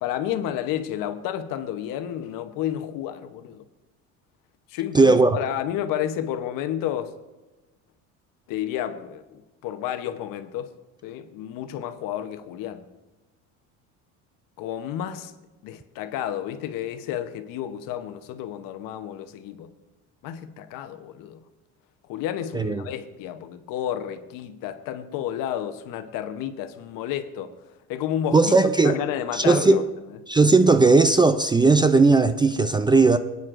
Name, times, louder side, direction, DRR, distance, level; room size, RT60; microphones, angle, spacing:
voice 1, 0.0-3.6 4.7-7.1 8.5-9.2 9.6-10.7 11.0-12.9 14.6-15.3 15.6-19.7 20.2-21.4 22.1-27.5 27.9-28.5 28.8-29.9, left 10 dB, 65° left, 0.9 m, -31 dB
voice 2, 4.9-5.4 22.5-22.8 28.3-29.0 29.3-29.9 30.3-33.2, right 3 dB, 15° right, 0.4 m, -17 dB
20.0 x 9.5 x 2.5 m
supercardioid pair, 100°, 35 cm